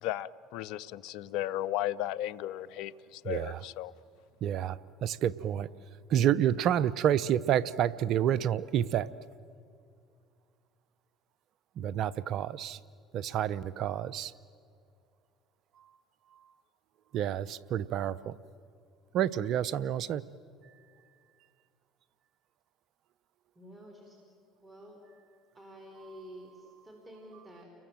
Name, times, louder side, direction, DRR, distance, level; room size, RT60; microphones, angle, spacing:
voice 1, 0.0-3.9, left 13 dB, 70° left, 18 dB, 0.6 m, -35 dB
voice 2, 3.2-3.6 4.4-5.7 6.1-9.1 11.8-12.8 13.1-14.3 17.1-18.4 19.1-20.2, right 10 dB, 60° right, 19 dB, 0.7 m, -29 dB
voice 3, 23.5-24.2 24.6-25.0 25.5-27.7, equal, 20° right, 1 dB, 5.0 m, -50 dB
30.0 x 22.0 x 7.6 m, 2.3 s
hypercardioid pair, 70°, 0 cm